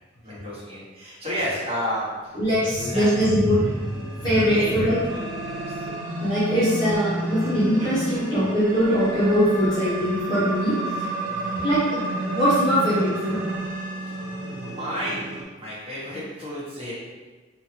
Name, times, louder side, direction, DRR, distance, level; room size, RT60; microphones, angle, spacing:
voice 1, 0.2-2.3 2.7-3.2 3.5-3.7 4.5-5.9 8.3-8.7 11.3-11.7 14.1-14.2 14.6-16.9, equal, 30° right, -9 dB, 1.3 m, -32 dB
voice 2, 2.3-5.0 6.2-10.8 11.6-11.8 12.3-13.4, equal, 20° left, -12 dB, 1.0 m, -22 dB
sound 1, 2.3-15.4, right 1 dB, 75° right, 0.7 m, -31 dB
4.3 x 2.5 x 3.3 m, 1.4 s
head